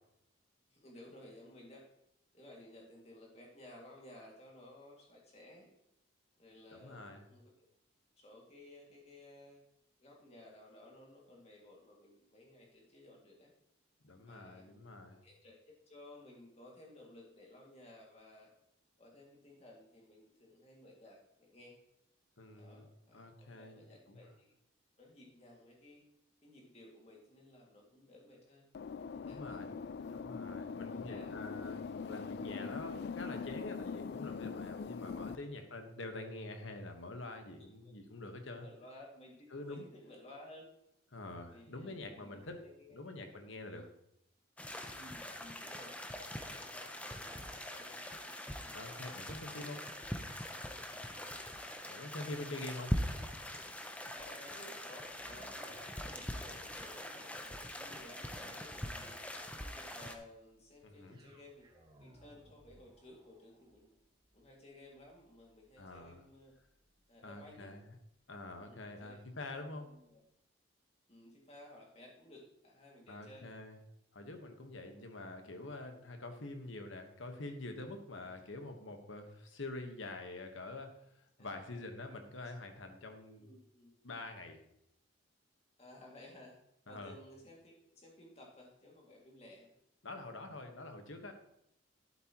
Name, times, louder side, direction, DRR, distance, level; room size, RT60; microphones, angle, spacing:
voice 1, 0.7-1.9 2.3-5.7 6.4-7.7 8.2-9.6 10.0-13.5 14.2-14.7 15.2-18.5 19.0-21.8 22.5-24.5 25.0-26.0 26.4-28.7 29.1-29.6 30.0-30.2 30.6-31.4 35.4-35.6 38.6-40.7 41.4-43.2 43.7-43.8 44.9-46.0 46.5-48.0 48.6-49.0 49.5-49.6 51.1-51.3 54.1-55.6 56.0-59.1 59.6-63.9 64.3-66.5 67.1-67.7 68.6-69.3 69.5-70.2 71.1-73.5 74.9-75.0 81.4-81.8 83.3-83.9 85.8-86.6 86.8-89.7, left 1 dB, 30° left, -1 dB, 2.2 m, -57 dB
voice 2, 6.7-7.2 14.0-15.2 22.4-22.9 23.1-23.8 24.1-24.2 29.2-29.8 30.1-38.7 39.5-39.8 41.1-42.6 42.9-43.8 48.7-49.8 51.9-52.9 60.8-61.2 65.8-66.2 67.2-67.8 68.3-69.9 73.1-73.8 74.1-83.5 84.0-84.6 86.9-87.2 90.0-91.3, left 2 dB, 70° left, 5 dB, 1.3 m, -46 dB
sound 1, 28.7-35.4, left 5 dB, 55° left, 0.3 m, -42 dB
sound 2, 44.6-60.1, left 1 dB, 5° left, 0.6 m, -42 dB
sound 3, 55.0-69.2 69.7-69.8, right 1 dB, 20° right, 1.3 m, -64 dB
11.5 x 8.3 x 3.0 m, 0.78 s
head